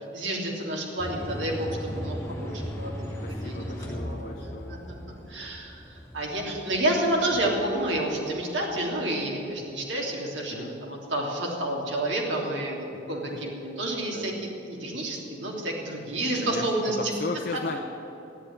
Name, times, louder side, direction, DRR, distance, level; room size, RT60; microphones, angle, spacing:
voice 1, 0.1-4.3 4.7-17.1 17.5-17.6, right 1 dB, 90° right, -2 dB, 3.1 m, -30 dB
sound 1, 1.0-9.0, equal, 15° left, 3.0 m, -38 dB
voice 2, 3.2-4.7 7.4-7.5 10.5-10.7 12.9-13.0 13.3-13.4 14.1-14.3 16.4-17.8, left 3 dB, 50° left, 2 dB, 1.0 m, -36 dB
14.5 x 9.5 x 10.0 m, 2.9 s
head